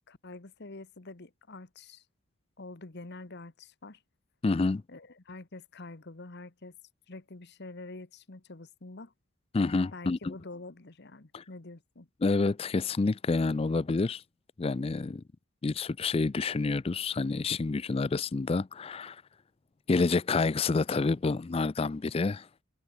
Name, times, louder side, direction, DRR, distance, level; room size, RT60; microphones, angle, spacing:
voice 1, 0.1-2.0 2.6-4.0 4.9-6.8 7.1-9.1 9.9-12.1, left 2 dB, 50° left, 1.1 m, -46 dB
voice 2, 4.4-4.8 9.5-10.3 11.3-11.4 12.2-14.2 14.6-15.2 15.6-19.2 19.9-22.5, left 3 dB, 25° left, 0.3 m, -28 dB
head